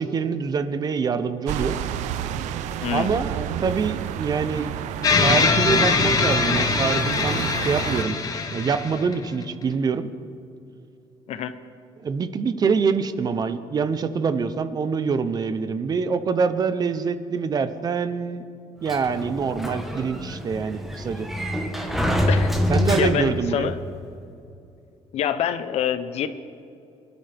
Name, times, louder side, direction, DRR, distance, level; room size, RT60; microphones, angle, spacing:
voice 1, 0.0-1.8 2.9-4.7 5.2-8.2 8.5-10.1 12.0-18.4 18.8-21.3 22.7-23.7, right 5 dB, 35° right, 12 dB, 0.7 m, -25 dB
sound 1, 1.5-8.0, right 10 dB, 90° right, 0.6 m, -30 dB
voice 2, 2.8-3.2 11.3-11.5 22.2-23.8 25.1-26.3, left 9 dB, 65° left, 11 dB, 0.8 m, -26 dB
sound 2, 5.0-9.4, left 4 dB, 30° left, 1.0 m, -22 dB
Sliding door, 18.9-23.5, left 1 dB, ahead, 1.3 m, -25 dB
23.5 x 12.5 x 3.5 m, 2.6 s
cardioid pair, 140°, 12 cm